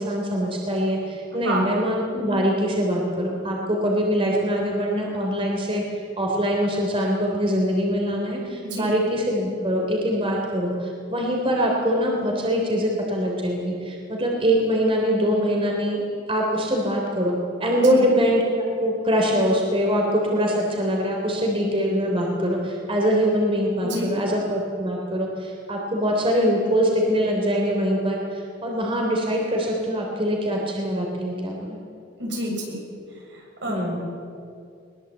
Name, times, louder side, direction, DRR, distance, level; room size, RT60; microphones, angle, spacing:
voice 1, 0.0-31.8 33.7-34.0, equal, 30° right, -1 dB, 3.4 m, -23 dB
voice 2, 17.8-18.1 23.8-24.2 32.2-32.8 33.1-33.9, right 1 dB, 75° right, -1 dB, 7.1 m, -29 dB
22.0 x 21.0 x 8.3 m, 2.4 s
head